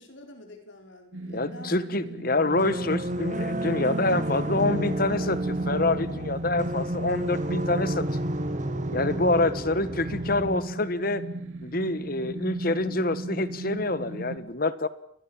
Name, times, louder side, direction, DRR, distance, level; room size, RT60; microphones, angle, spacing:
voice 1, 0.0-2.2 3.7-3.8 4.2-4.3, left 1 dB, 70° left, 4 dB, 5.3 m, -48 dB
sound 1, 1.1-14.4, right 2 dB, 80° right, 3.0 m, -35 dB
voice 2, 1.3-8.0 8.9-11.2 11.6-14.9, left 2 dB, 45° left, 14 dB, 1.4 m, -26 dB
sound 2, 2.6-10.6, right 1 dB, 40° right, 2.1 m, -31 dB
29.5 x 22.0 x 7.4 m, 0.69 s
head